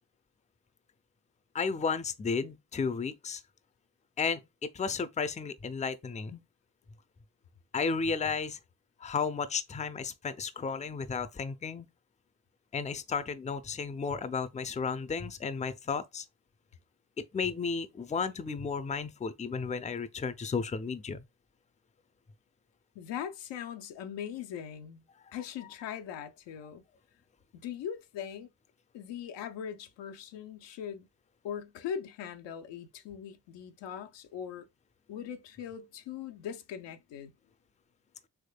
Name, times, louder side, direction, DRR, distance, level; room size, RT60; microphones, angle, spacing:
voice 1, 1.5-3.4 4.2-4.4 4.7-6.4 7.7-8.6 9.0-11.9 12.7-16.2 17.2-21.2, left 5 dB, 15° left, 0.4 m, -33 dB
voice 2, 22.9-25.0 25.3-26.8 27.5-28.5 28.9-31.1 31.4-34.6 35.1-37.3, left 8 dB, 85° left, 0.6 m, -40 dB
3.5 x 3.1 x 2.2 m
supercardioid pair, 40°, 42 cm